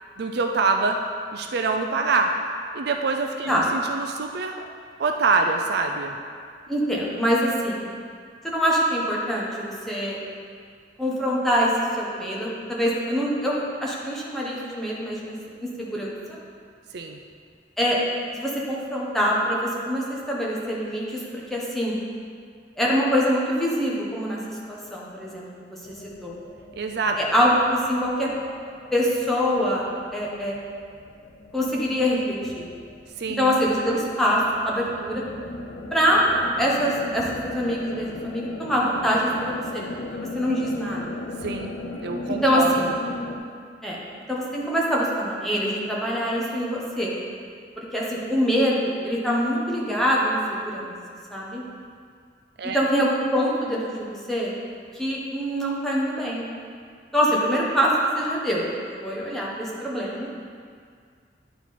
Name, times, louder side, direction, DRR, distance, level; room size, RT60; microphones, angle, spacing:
voice 1, 0.2-1.0 1.3-2.3 2.7-4.7 5.0-6.2 16.9-17.2 26.8-27.3 33.2-33.5 41.4-41.7 42.0-42.9 52.6-52.8, right 4 dB, 65° right, 4 dB, 0.5 m, -25 dB
voice 2, 6.7-7.8 8.4-10.2 11.0-11.7 12.0-15.4 15.8-16.4 17.8-18.0 18.3-21.2 21.5-21.9 22.8-24.4 24.7-25.4 26.2-26.3 27.2-28.3 28.9-29.9 30.1-30.5 31.5-32.7 33.4-35.2 35.9-36.2 36.6-39.8 40.1-41.2 42.4-42.8 43.8-44.0 44.3-47.1 47.8-50.9 51.3-51.6 52.7-54.5 54.9-56.5 57.1-58.6 59.0-60.3, equal, ahead, -5 dB, 1.2 m, -24 dB
sound 1, 25.8-43.4, left 2 dB, 85° left, 0.7 m, -38 dB
10.5 x 4.4 x 4.2 m, 2.1 s
head